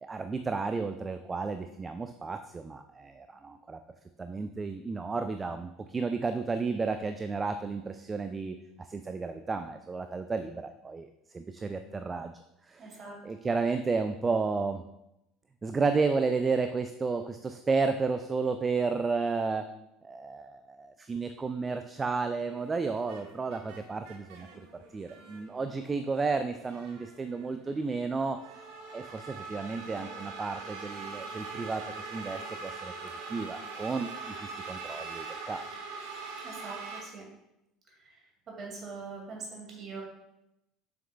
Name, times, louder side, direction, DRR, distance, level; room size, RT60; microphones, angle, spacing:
voice 1, 0.0-3.8 4.2-11.1 11.3-12.3 12.7-12.9 13.2-14.8 15.6-19.7 20.0-28.4 28.9-32.9 33.3-34.1 34.4-35.7, right 4 dB, 20° right, 8 dB, 0.3 m, -32 dB
voice 2, 12.8-13.1 36.4-37.2 38.6-40.0, right 4 dB, 40° right, -2 dB, 2.2 m, -42 dB
sound 1, 22.4-37.0, right 4 dB, 60° right, 0.9 m, -43 dB
7.0 x 6.1 x 2.3 m, 0.87 s
figure-of-eight pair, 65°, 0 cm